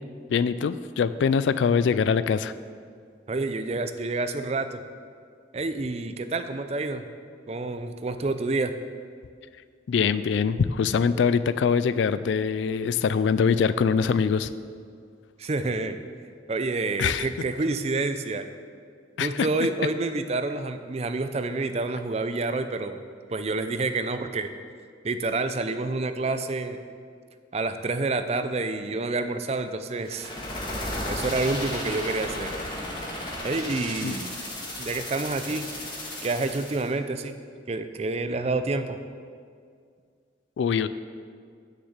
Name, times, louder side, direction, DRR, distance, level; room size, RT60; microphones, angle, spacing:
voice 1, 0.3-2.5 9.9-14.5 17.0-17.3 19.2-19.5 34.0-34.1 40.6-40.9, left 6 dB, 85° left, 14 dB, 0.3 m, -23 dB
voice 2, 3.3-4.8 5.5-7.0 7.5-8.7 15.4-16.0 16.5-18.5 19.2-23.0 23.3-24.5 25.0-26.8 27.5-30.3 31.1-32.5 33.4-34.3 34.8-35.7 36.2-37.3 37.7-39.0, right 3 dB, 35° right, 9 dB, 0.5 m, -28 dB
sound 1, 30.0-36.9, left 1 dB, 25° left, 1.6 m, -34 dB
6.7 x 6.6 x 7.2 m, 2.1 s
head